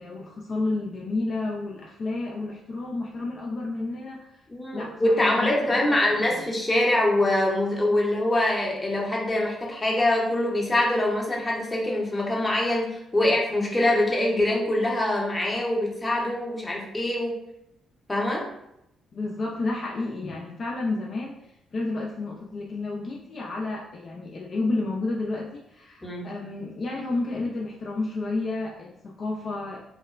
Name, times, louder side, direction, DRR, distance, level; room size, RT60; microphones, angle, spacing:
voice 1, 0.0-4.5 4.7-6.5 19.1-29.8, left 2 dB, 45° left, -2 dB, 0.3 m, -31 dB
voice 2, 4.5-12.9 13.1-17.3 18.1-18.5 26.0-26.3, left 1 dB, 15° left, -3 dB, 0.7 m, -24 dB
2.8 x 2.0 x 2.4 m, 0.82 s
cardioid pair, 90°, 0 cm